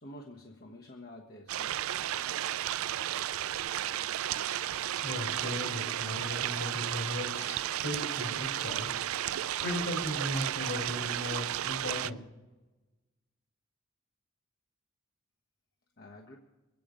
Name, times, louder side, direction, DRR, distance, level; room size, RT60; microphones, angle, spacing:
voice 1, 0.0-1.7 16.0-16.4, left 1 dB, 50° left, 0 dB, 1.3 m, -48 dB
sound 1, 1.5-12.1, right 11 dB, 85° right, 0.4 m, -33 dB
voice 2, 5.0-8.9 9.6-12.2, left 1 dB, 65° left, 3 dB, 3.3 m, -37 dB
23.0 x 9.3 x 5.2 m, 1.1 s
head